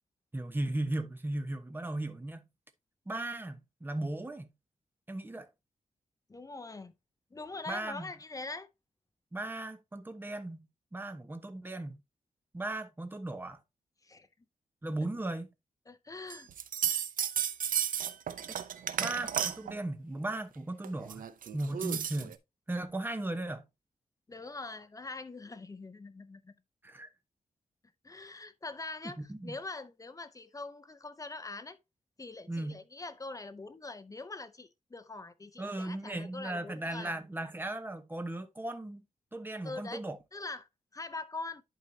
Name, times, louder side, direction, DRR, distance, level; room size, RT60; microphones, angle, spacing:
voice 1, 0.3-2.4 3.1-4.5 5.1-5.5 7.7-8.1 9.3-12.0 12.5-13.6 14.8-15.5 18.5-18.6 19.0-21.2 21.5-22.3 22.7-23.6 26.8-27.1 29.0-29.6 32.5-32.8 35.6-39.0 39.3-40.2, right 1 dB, 15° right, 1.0 m, -37 dB
voice 2, 6.3-6.9 7.3-8.7 14.0-14.3 15.9-16.5 24.3-26.5 28.0-31.8 32.2-37.1 39.6-40.0 40.3-41.6, left 3 dB, 25° left, 0.6 m, -43 dB
sound 1, 16.3-19.8 20.8-22.3, right 9 dB, 85° right, 0.6 m, -33 dB
11.0 x 4.5 x 2.8 m
wide cardioid pair, 110°, 14 cm